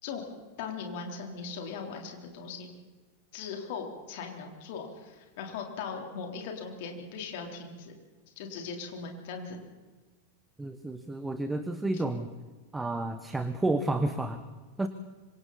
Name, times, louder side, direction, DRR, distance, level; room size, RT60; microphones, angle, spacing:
voice 1, 0.0-2.7 3.3-7.9 8.4-9.6, left 5 dB, 50° left, 2 dB, 3.9 m, -39 dB
voice 2, 10.6-12.3 12.7-14.4 14.8-14.9, right 2 dB, 10° right, 9 dB, 1.2 m, -30 dB
26.0 x 25.5 x 4.3 m, 1.3 s
figure-of-eight pair, 90°, 0 cm